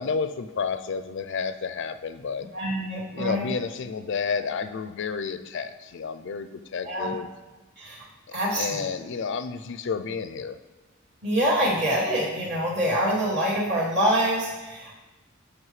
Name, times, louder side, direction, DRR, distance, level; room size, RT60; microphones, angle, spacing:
voice 1, 0.0-2.5 3.1-7.3 8.3-10.6, left 5 dB, 60° left, 11 dB, 0.4 m, -31 dB
voice 2, 2.5-3.5 6.8-7.1 7.8-8.0 8.3-8.9 11.2-15.0, equal, 55° right, -7 dB, 2.9 m, -25 dB
12.5 x 5.9 x 3.2 m, 1.2 s
head